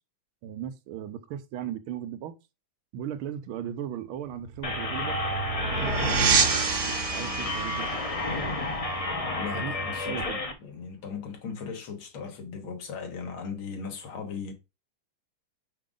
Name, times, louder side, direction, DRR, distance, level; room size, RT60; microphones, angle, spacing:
voice 1, 0.4-2.3 2.9-5.2 5.7-6.5 6.9-8.0 9.5-9.7 10.0-10.4, right 9 dB, 90° right, 1.6 m, -37 dB
sound 1, 4.3-9.7, right 5 dB, 50° right, 0.9 m, -29 dB
sound 2, 4.6-10.5, left 2 dB, 50° left, 0.4 m, -31 dB
voice 2, 9.3-10.2 10.6-14.5, left 5 dB, 85° left, 2.2 m, -37 dB
5.7 x 5.1 x 3.7 m
omnidirectional pair, 2.2 m